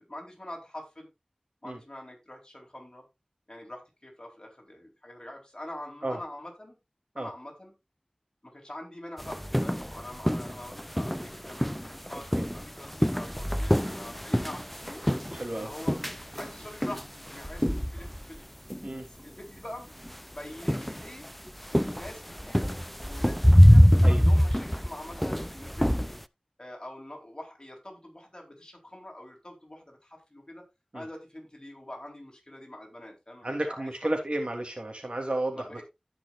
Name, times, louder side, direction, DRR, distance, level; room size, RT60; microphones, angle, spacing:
voice 1, 0.1-1.1 1.6-3.0 3.5-6.8 7.2-7.7 8.4-15.0 15.5-16.0 16.4-18.4 19.0-19.9 20.2-21.3 21.9-26.2 26.6-30.6 30.9-34.1 35.5-35.8, left 1 dB, 40° left, 0 dB, 4.2 m, -44 dB
sound 1, 9.2-18.4 18.7-19.0 20.0-20.1 20.6-26.2, equal, 5° left, 0.5 m, -24 dB
voice 2, 15.3-15.7 18.8-19.0 24.0-24.2 30.9-31.0 33.4-35.8, right 1 dB, 60° right, 3 dB, 3.0 m, -32 dB
16.5 x 6.1 x 2.5 m, 0.23 s
wide cardioid pair, 45°, 2 cm